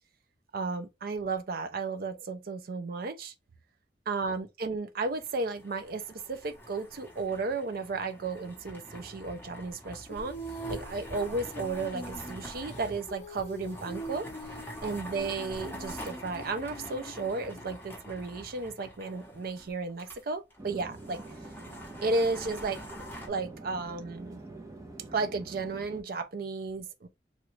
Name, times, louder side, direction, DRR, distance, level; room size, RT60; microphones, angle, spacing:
voice 1, 0.5-3.3 4.1-14.3 14.8-21.2 22.0-24.4 25.1-27.1, right 3 dB, 55° right, 0.5 m, -34 dB
sound 1, 5.0-20.2 20.5-20.6 20.9-23.3, equal, 10° left, 0.9 m, -45 dB
Female singing, 10.1-17.8, right 1 dB, 40° left, 0.7 m, -44 dB
Chatter / Fixed-wing aircraft airplane, 20.6-26.0, right 2 dB, 20° right, 0.7 m, -46 dB
3.1 x 2.4 x 3.1 m
head